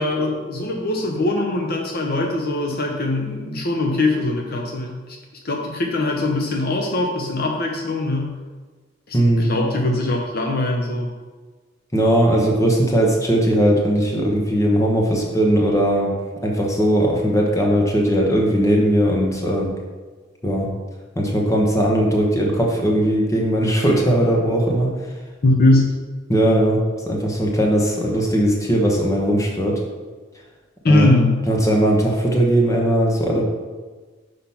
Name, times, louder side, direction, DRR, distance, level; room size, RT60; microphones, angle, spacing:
voice 1, 0.0-5.0 5.4-8.3 9.1-11.1 25.4-25.9 30.8-31.4, left 2 dB, 50° left, 1 dB, 0.8 m, -21 dB
voice 2, 11.9-16.1 16.4-19.7 20.4-20.7 21.2-24.9 26.3-26.8 27.1-29.8 30.9-31.1 31.5-33.4, right 1 dB, 15° left, -1 dB, 1.2 m, -18 dB
6.0 x 5.0 x 5.7 m, 1.4 s
head